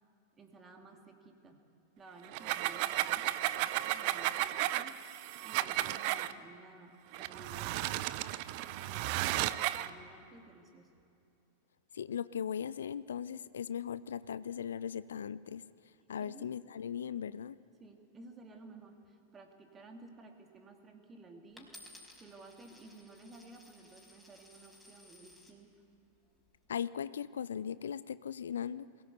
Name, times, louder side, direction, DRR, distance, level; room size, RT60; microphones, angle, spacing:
voice 1, 0.3-1.6 2.0-8.2 8.6-10.9 16.2-16.5 17.8-21.7 22.2-25.8, right 3 dB, 20° right, 4 dB, 2.6 m, -55 dB
sound 1, 2.2-6.3 7.1-9.9, right 15 dB, 45° right, 0.7 m, -34 dB
voice 2, 11.9-15.6 16.1-17.6 26.7-28.9, left 8 dB, 65° left, 17 dB, 0.4 m, -38 dB
Coin (dropping), 21.6-25.6 26.3-26.7, left 1 dB, ahead, 4.7 m, -57 dB
22.0 x 17.5 x 8.1 m, 2.6 s
figure-of-eight pair, 90°, 0 cm